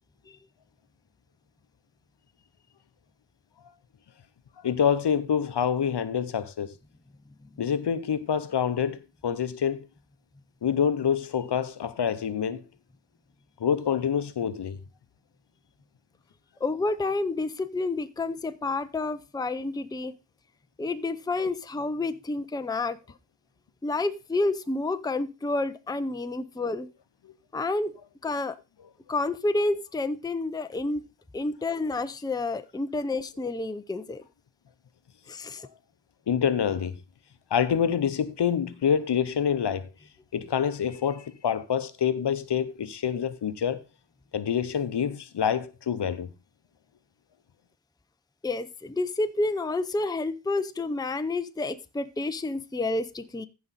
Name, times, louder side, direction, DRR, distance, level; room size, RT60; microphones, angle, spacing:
voice 1, 4.6-6.7 7.6-9.9 10.6-12.6 13.6-14.8 27.2-27.3 36.3-37.0 37.5-39.9 40.3-43.8 44.3-46.3, left 8 dB, 65° left, 0.8 m, -26 dB
voice 2, 16.6-20.1 20.8-23.0 23.8-26.9 27.5-27.9 28.2-28.6 29.1-31.0 31.3-34.2 35.3-35.7 48.4-53.5, left 2 dB, 10° left, 0.5 m, -29 dB
15.0 x 5.1 x 4.1 m
wide cardioid pair, 110°, 44 cm